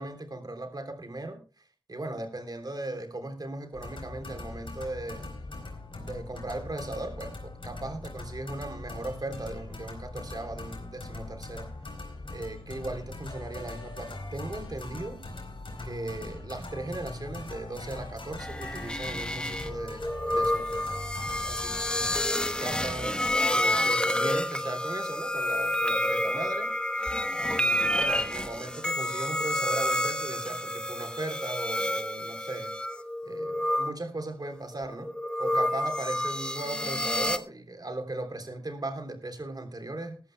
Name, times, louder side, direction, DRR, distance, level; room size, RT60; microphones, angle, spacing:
voice 1, 0.0-5.3 6.0-11.8 12.3-15.2 15.8-21.1 21.4-22.1 22.6-26.7 27.4-32.7 33.2-40.2, right 2 dB, 50° right, 6 dB, 3.4 m, -38 dB
sound 1, 3.7-22.3, left 2 dB, 80° left, 4.3 m, -41 dB
sound 2, 18.4-33.9 34.8-37.4, left 1 dB, 10° left, 1.1 m, -29 dB
20.0 x 14.0 x 2.2 m, 0.31 s
wide cardioid pair, 70°, 9 cm